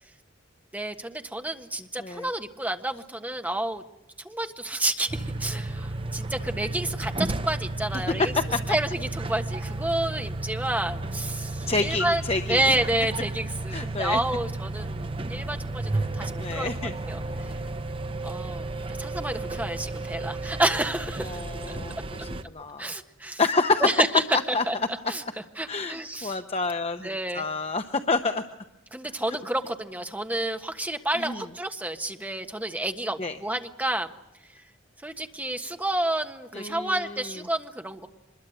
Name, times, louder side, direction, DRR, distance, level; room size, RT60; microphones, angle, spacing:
voice 1, 0.7-3.8 4.2-8.3 8.7-12.2 12.5-16.7 17.1-17.5 18.2-18.7 19.0-21.4 21.7-21.8 22.8-23.4 23.8-24.8 25.1-25.2 25.6-26.4 27.0-27.4 28.9-34.1 35.0-38.1, right 1 dB, 10° right, 6 dB, 1.4 m, -29 dB
sound 1, 5.1-22.4, right 2 dB, 25° right, 0.8 m, -33 dB
voice 2, 8.2-8.6 11.7-12.7 13.7-14.2 16.4-16.9 21.2-22.0 22.2-22.9 23.4-24.0 24.3-24.6 25.7-27.1 27.3-28.4 31.1-31.4 33.2-33.4 36.5-37.3, left 3 dB, 30° left, 7 dB, 0.9 m, -28 dB
25.5 x 22.0 x 7.9 m, 0.91 s
head